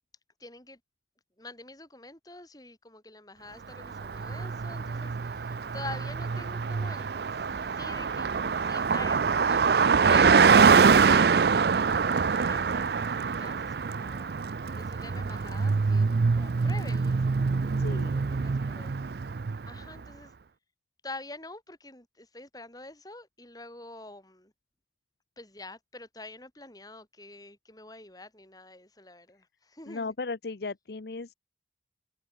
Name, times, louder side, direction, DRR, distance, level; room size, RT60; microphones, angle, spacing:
voice 1, 0.4-0.8 1.4-18.9 19.7-20.3 21.0-24.5 25.4-30.1, left 2 dB, 20° left, 6.8 m, -46 dB
Car passing by, 3.8-19.9, right 5 dB, 55° right, 0.5 m, -24 dB
sound 1, 5.8-13.5, right 3 dB, 75° right, 3.1 m, -51 dB
voice 2, 17.8-18.1 29.9-31.3, left 3 dB, 60° left, 0.7 m, -36 dB
head